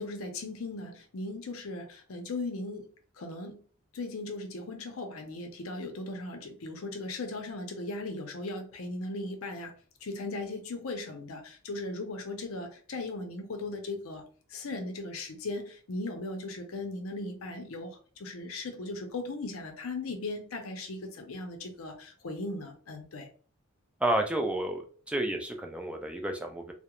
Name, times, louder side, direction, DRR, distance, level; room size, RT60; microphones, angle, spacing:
voice 1, 0.0-2.9 3.2-3.6 3.9-9.7 10.0-14.2 14.5-23.3, left 2 dB, 75° left, 4 dB, 0.6 m, -38 dB
voice 2, 24.0-26.7, right 1 dB, 5° right, 3 dB, 0.3 m, -31 dB
2.3 x 2.1 x 2.9 m, 0.43 s
head